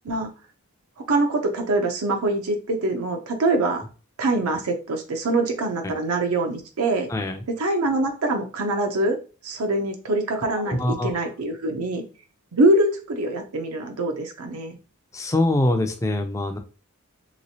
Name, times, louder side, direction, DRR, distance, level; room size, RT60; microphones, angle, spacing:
voice 1, 1.1-3.8 4.2-7.1 7.5-9.2 9.4-12.0 12.5-14.8, right 2 dB, 80° right, 4 dB, 0.6 m, -24 dB
voice 2, 10.7-11.1 15.1-16.6, left 1 dB, 15° left, 6 dB, 0.3 m, -23 dB
3.2 x 3.0 x 2.7 m, 0.35 s
head